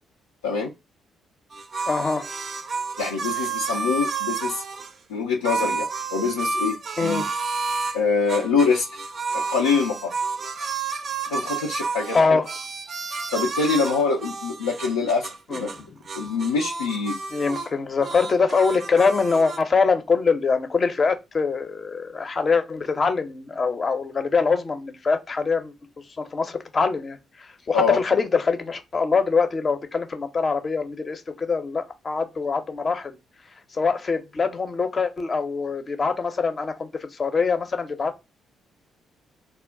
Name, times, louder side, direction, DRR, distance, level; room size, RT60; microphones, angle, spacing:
sound 1, 1.5-4.9 5.4-8.0 8.3-15.8 16.1-17.7 18.0-19.6, right 4 dB, 50° right, 0.4 m, -30 dB
voice 1, 1.9-2.3 7.0-7.3 12.1-12.5 15.5-15.6 16.2-16.3 17.3-25.7 26.2-33.2 33.7-38.2, left 4 dB, 40° left, 0.6 m, -23 dB
voice 2, 3.0-4.6 5.1-7.2 7.9-8.9 9.3-10.1 11.3-12.4 13.3-15.7 16.2-17.2 27.7-28.0, left 5 dB, 90° left, 0.4 m, -24 dB
2.2 x 2.0 x 3.7 m
hypercardioid pair, 45°, 0 cm